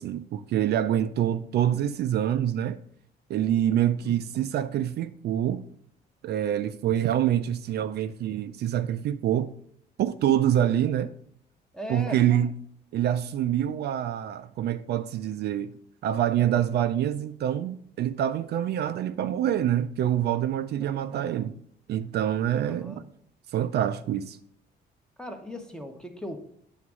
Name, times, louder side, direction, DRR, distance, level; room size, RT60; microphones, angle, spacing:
voice 1, 0.0-2.8 3.3-5.7 6.2-9.5 10.0-11.1 11.9-12.5 12.9-15.7 16.0-21.6 21.9-23.0 23.5-24.4, right 11 dB, 60° right, 0.4 m, -26 dB
voice 2, 4.0-4.4 11.7-12.2 20.8-21.2 22.6-23.1 25.2-26.4, equal, 5° left, 0.9 m, -39 dB
9.2 x 3.6 x 6.1 m
cardioid pair, 140°, 19 cm